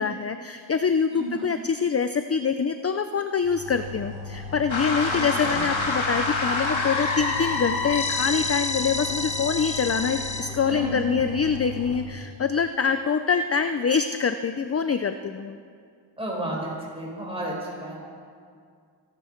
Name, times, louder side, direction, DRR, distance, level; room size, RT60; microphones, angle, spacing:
voice 1, 0.0-15.6, left 6 dB, 35° left, 9 dB, 0.5 m, -25 dB
voice 2, 1.1-1.5 5.1-5.6 10.6-11.0 16.2-17.9, right 1 dB, 10° right, -4 dB, 5.0 m, -32 dB
sound 1, 3.4-12.1, left 3 dB, 55° right, 2.0 m, -38 dB
sound 2, 4.7-10.4, left 3 dB, 85° left, 2.3 m, -27 dB
26.5 x 12.0 x 4.5 m, 2.2 s
wide cardioid pair, 135°, 46 cm